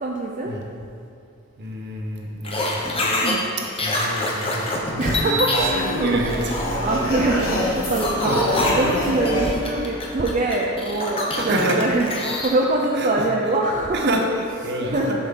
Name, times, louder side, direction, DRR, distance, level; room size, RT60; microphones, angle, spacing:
voice 1, 0.0-0.5 3.2-3.4 5.0-6.2 6.8-8.4 8.8-12.1 12.4-14.1 14.8-15.3, right 2 dB, 40° right, -2 dB, 0.5 m, -23 dB
voice 2, 1.6-2.8 3.7-6.6 7.4-7.5 8.2-8.4 11.4-11.8 13.0-13.3 13.9-15.2, right 1 dB, 55° right, 1 dB, 0.9 m, -28 dB
sound 1, 2.4-3.3 3.6-5.8 6.2-7.5 8.0-12.5, left 1 dB, 30° left, 0.9 m, -25 dB
sound 2, 5.5-10.7, left 1 dB, 70° left, 1.5 m, -26 dB
7.0 x 6.2 x 3.7 m, 2.6 s
head